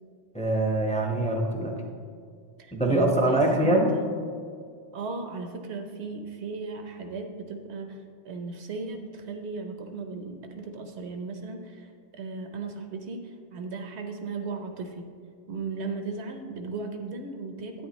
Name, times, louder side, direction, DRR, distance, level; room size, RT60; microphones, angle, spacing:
voice 1, 0.3-1.7 2.7-3.9, right 1 dB, 5° left, 1 dB, 0.8 m, -23 dB
voice 2, 2.6-4.1 4.9-8.0 8.2-11.9 12.1-13.2 13.5-15.0 15.5-17.9, right 4 dB, 65° right, 5 dB, 1.1 m, -36 dB
10.5 x 9.1 x 3.2 m, 2.2 s
omnidirectional pair, 1.3 m